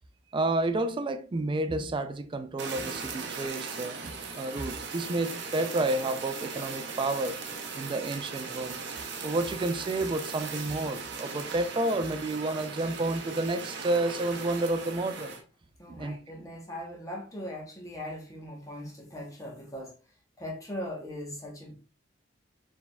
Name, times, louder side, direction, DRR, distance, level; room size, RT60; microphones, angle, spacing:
voice 1, 0.3-7.4 7.7-8.8 9.2-15.4 15.9-16.5, right 2 dB, 25° right, 0.3 m, -30 dB
Fire, 2.6-15.4, right 5 dB, 60° right, 0.6 m, -38 dB
voice 2, 15.8-19.9 20.4-21.8, left 1 dB, 15° left, 1.0 m, -40 dB
4.6 x 3.4 x 2.2 m
head